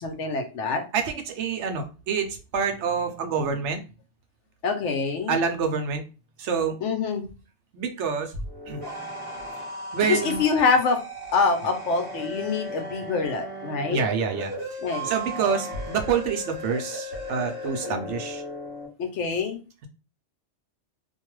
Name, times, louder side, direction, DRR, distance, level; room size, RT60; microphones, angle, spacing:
voice 1, 0.0-0.8 4.6-5.4 6.8-7.2 10.1-11.0 11.3-14.0 14.8-15.1 17.9-18.1 19.0-19.6, left 5 dB, 75° left, 5 dB, 1.0 m, -25 dB
voice 2, 0.9-3.8 5.3-6.0 6.4-6.8 7.7-8.8 9.9-10.4 13.9-14.8 15.0-18.4, right 6 dB, 75° right, 6 dB, 0.9 m, -27 dB
sound 1, 8.4-18.9, equal, 15° right, 1.1 m, -36 dB
2.5 x 2.3 x 3.0 m, 0.31 s
omnidirectional pair, 1.2 m